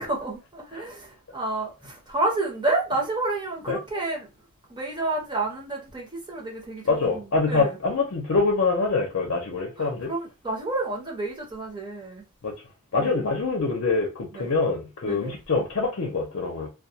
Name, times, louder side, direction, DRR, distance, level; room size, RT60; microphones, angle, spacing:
voice 1, 0.0-4.3 4.7-7.8 9.8-12.2 12.9-13.2 14.3-14.5 15.0-15.3, right 2 dB, 20° right, 0.8 m, -30 dB
voice 2, 6.9-10.1 12.4-12.5 12.9-16.7, left 3 dB, 65° left, 0.6 m, -25 dB
2.2 x 2.2 x 2.7 m
head